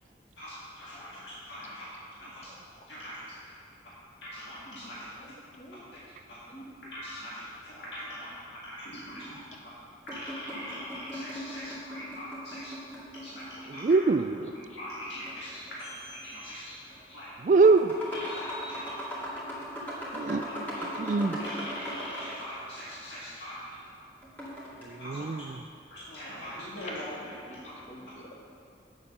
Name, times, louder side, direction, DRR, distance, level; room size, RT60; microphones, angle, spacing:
voice 1, 0.4-1.9 2.2-2.5 2.9-3.3 4.2-5.1 6.3-6.4 6.8-9.4 9.6-9.7 10.1-12.7 13.2-14.1 14.5-16.8 17.1-17.6 18.1-18.9 20.3-20.4 20.7-21.0 21.4-23.9 25.0-25.4 25.9-27.1 27.6-27.7, equal, 90° left, -8 dB, 1.8 m, -42 dB
voice 2, 5.2-5.8 6.5-6.6 8.8-9.2 14.7-14.8 24.9-25.3 26.8-27.6 27.9-28.3, equal, 40° left, -1 dB, 1.4 m, -47 dB
sound 1, 10.1-13.8 15.3-16.1 16.9-17.0 17.4-22.5 24.2-24.9, equal, 10° left, 2.2 m, -39 dB
voice 3, 13.8-14.5 17.4-17.9 20.1-20.4 21.0-21.4 24.8-25.4, right 4 dB, 45° right, 12 dB, 0.3 m, -23 dB
8.7 x 7.2 x 6.5 m, 2.6 s
head